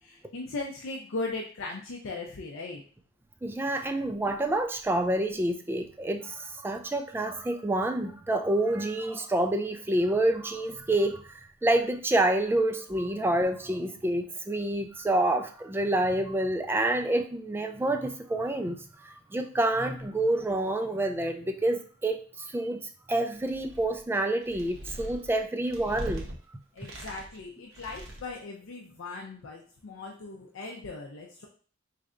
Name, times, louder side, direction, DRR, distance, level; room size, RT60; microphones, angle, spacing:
voice 1, 0.0-2.8 26.7-31.5, left 3 dB, 65° left, 0 dB, 0.5 m, -38 dB
voice 2, 3.4-22.8 23.1-26.2, right 1 dB, 10° right, 6 dB, 0.3 m, -28 dB
sound 1, 23.4-24.0 24.4-26.3 26.8-27.4 27.7-28.4, equal, 70° right, 0.9 m, -41 dB
3.9 x 3.2 x 2.5 m, 0.43 s
head